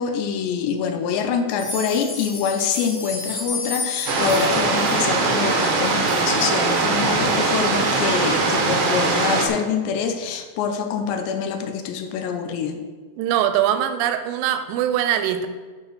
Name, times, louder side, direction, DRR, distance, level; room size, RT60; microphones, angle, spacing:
voice 1, 0.0-12.8, left 6 dB, 75° left, 7 dB, 2.7 m, -25 dB
sound 1, 1.5-6.2 6.7-6.8 7.2-7.3 7.8-7.9, left 3 dB, 40° left, 1.2 m, -32 dB
sound 2, 4.1-9.5, right 3 dB, 70° right, 2.0 m, -21 dB
voice 2, 13.2-15.5, right 10 dB, 85° right, 9 dB, 3.2 m, -22 dB
9.0 x 6.3 x 6.8 m, 1.4 s
omnidirectional pair, 5.7 m